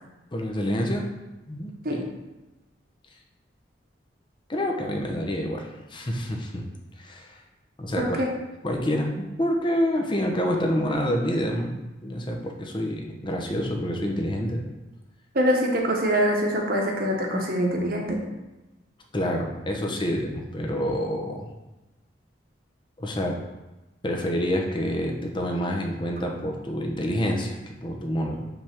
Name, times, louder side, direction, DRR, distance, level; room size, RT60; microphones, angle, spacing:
voice 1, 0.3-1.1 1.5-2.1 4.5-6.7 7.0-7.4 7.8-8.2 8.6-14.6 19.1-21.5 23.0-23.4 24.0-28.5, equal, 25° left, 1 dB, 0.8 m, -27 dB
voice 2, 8.0-8.3 15.3-18.2, equal, 55° right, 0 dB, 1.2 m, -24 dB
5.7 x 3.6 x 5.9 m, 1.1 s
head